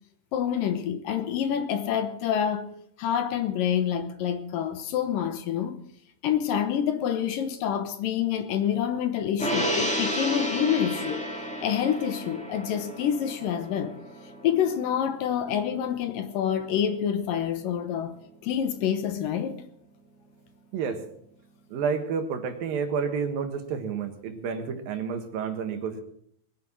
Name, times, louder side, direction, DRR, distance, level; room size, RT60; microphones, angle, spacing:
voice 1, 0.3-2.7 3.0-5.8 6.2-11.2 11.6-13.9 14.4-18.2 18.4-19.6, left 9 dB, 75° left, 2.5 m, -27 dB
Gong, 9.4-16.0 16.3-16.5, equal, 5° left, 1.5 m, -32 dB
voice 2, 21.7-26.0, right 6 dB, 70° right, 3.2 m, -30 dB
20.5 x 9.4 x 6.1 m
omnidirectional pair, 4.3 m